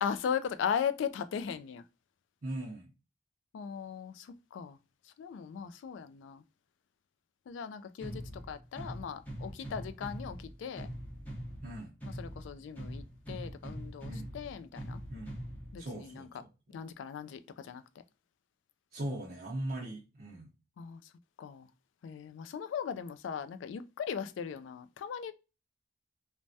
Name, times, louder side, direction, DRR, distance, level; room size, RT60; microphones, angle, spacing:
voice 1, 0.0-1.8 3.5-4.8 5.2-6.4 7.5-10.9 12.2-15.0 15.7-16.3 16.7-17.8 20.8-21.0 21.4-21.7 22.0-25.3, left 7 dB, 90° left, 0.3 m, -38 dB
voice 2, 2.4-2.9 8.0-8.2 11.6-11.9 14.1-14.3 15.1-15.4 15.8-16.5 18.9-20.5, right 1 dB, 50° right, 0.6 m, -40 dB
sound 1, 8.0-16.0, equal, 10° left, 0.7 m, -43 dB
3.2 x 2.1 x 2.6 m
head